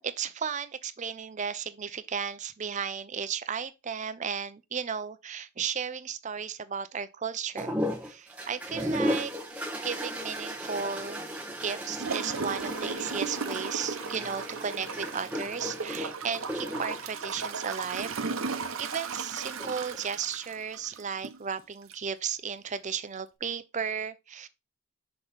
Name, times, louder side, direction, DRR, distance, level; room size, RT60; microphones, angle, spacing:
voice 1, 0.0-7.8 8.0-11.3 11.6-18.1 18.8-24.5, right 6 dB, 35° right, 0.5 m, -34 dB
sound 1, 7.6-18.2 19.4-20.0, equal, 5° right, 1.0 m, -35 dB
Gurgling / Toilet flush, 12.0-21.4 21.9-22.0, right 5 dB, 70° right, 0.8 m, -36 dB
6.1 x 3.0 x 5.3 m
head